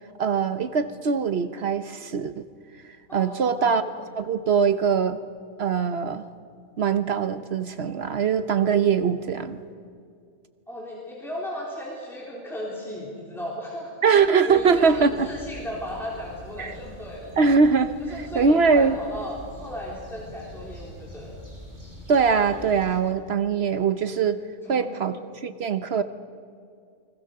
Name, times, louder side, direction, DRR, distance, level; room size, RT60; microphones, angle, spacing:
voice 1, 0.2-2.4 3.1-5.2 5.6-6.3 6.8-9.6 14.0-15.3 16.6-16.7 17.4-19.0 22.1-24.4 24.7-26.0, right 5 dB, 60° right, 11 dB, 1.0 m, -22 dB
voice 2, 3.1-3.8 10.7-13.9 14.5-17.4 18.1-21.4 24.7-24.9, equal, ahead, -4 dB, 3.6 m, -36 dB
sound 1, 14.5-23.0, equal, 40° right, 5.8 m, -44 dB
29.0 x 21.0 x 6.7 m, 2.4 s
omnidirectional pair, 1.3 m